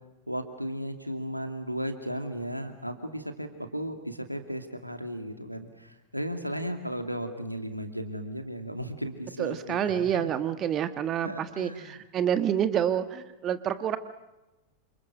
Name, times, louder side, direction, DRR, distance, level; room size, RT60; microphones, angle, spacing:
voice 1, 0.3-10.3 11.2-12.0, equal, 90° right, 6 dB, 2.5 m, -35 dB
voice 2, 9.4-14.0, right 9 dB, 30° right, 10 dB, 1.4 m, -28 dB
28.5 x 27.5 x 6.3 m, 1.0 s
figure-of-eight pair, 90°, 0 cm